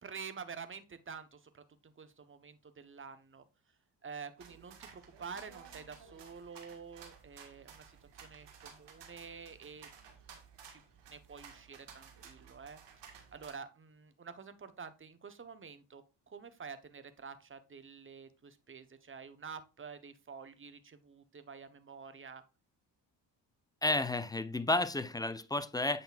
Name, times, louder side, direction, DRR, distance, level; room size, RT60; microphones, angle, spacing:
voice 1, 0.0-3.5 4.0-9.9 10.7-10.8 11.1-12.8 13.3-22.4, right 5 dB, 25° right, 1.1 m, -48 dB
sound 1, 4.4-13.5, right 7 dB, 55° right, 1.8 m, -55 dB
voice 2, 23.8-26.0, left 2 dB, 10° left, 0.4 m, -32 dB
7.9 x 6.5 x 2.5 m
figure-of-eight pair, 45°, 50 cm